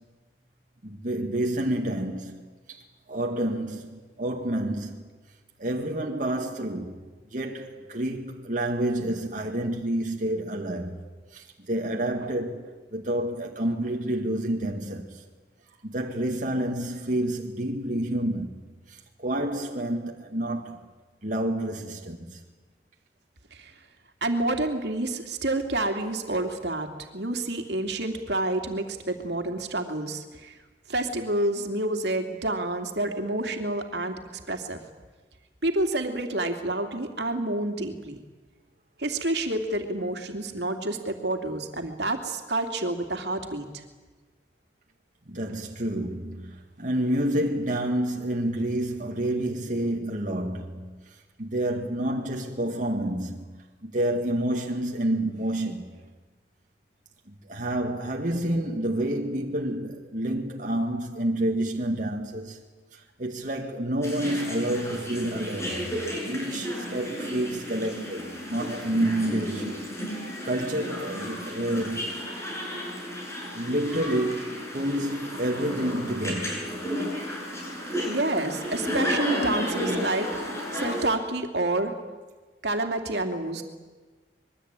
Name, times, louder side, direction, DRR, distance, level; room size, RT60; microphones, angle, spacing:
voice 1, 0.8-2.4 2.7-2.8 3.1-5.1 5.6-7.0 7.3-11.0 11.3-15.2 15.8-18.5 18.9-20.8 21.2-22.4 45.3-56.0 57.3-62.6 62.9-65.8 66.3-72.1 73.5-76.7, right 1 dB, 45° right, 2.1 m, -29 dB
voice 2, 24.2-26.9 27.1-30.6 30.9-34.2 34.5-34.8 35.6-38.2 39.0-43.8 78.1-80.3 80.7-81.9 82.6-83.6, right 2 dB, 70° right, 2.8 m, -28 dB
sound 1, 64.0-81.1, equal, 15° left, 7.9 m, -33 dB
25.0 x 22.0 x 9.0 m
head